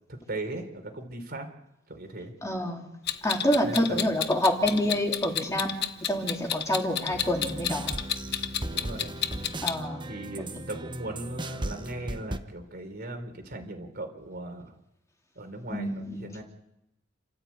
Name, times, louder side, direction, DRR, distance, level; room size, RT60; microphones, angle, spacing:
voice 1, 0.1-1.5 1.9-2.3 3.6-4.0 8.7-9.1 10.0-14.7 15.4-16.4, right 2 dB, 50° right, 5 dB, 3.7 m, -38 dB
voice 2, 2.4-2.8 3.2-5.7 6.0-7.9 9.6-10.0 15.7-16.2, equal, 15° left, 1 dB, 3.0 m, -27 dB
Clock, 3.1-9.8, left 9 dB, 55° left, 1.1 m, -31 dB
sound 1, 7.1-12.4, right 1 dB, 25° right, 1.0 m, -37 dB
29.5 x 13.5 x 8.5 m, 0.88 s
head